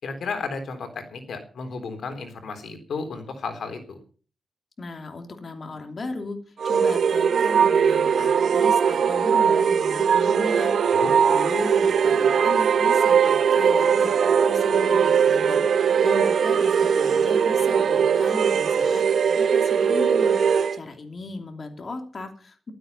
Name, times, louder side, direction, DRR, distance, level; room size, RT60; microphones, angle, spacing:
voice 1, 0.0-4.0 10.9-11.1, left 4 dB, 85° left, 7 dB, 3.7 m, -33 dB
voice 2, 4.8-22.7, left 3 dB, 45° left, 4 dB, 2.9 m, -36 dB
sound 1, 6.6-20.8, right 7 dB, 80° right, 1.1 m, -20 dB
15.5 x 13.0 x 5.6 m, 0.41 s
wide cardioid pair, 105°, 0 cm